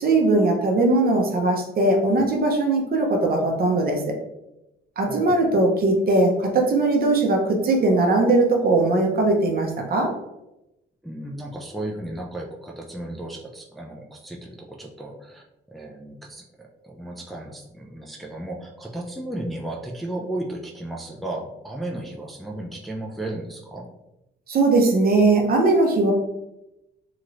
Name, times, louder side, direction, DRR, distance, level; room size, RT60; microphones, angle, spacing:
voice 1, 0.0-4.2 5.0-10.1 24.5-26.1, right 2 dB, 50° right, 1 dB, 0.7 m, -20 dB
voice 2, 5.1-5.6 11.0-15.4 15.7-23.9, right 1 dB, ahead, -2 dB, 0.5 m, -34 dB
3.0 x 2.9 x 2.5 m, 0.91 s
cardioid pair, 90°, 20 cm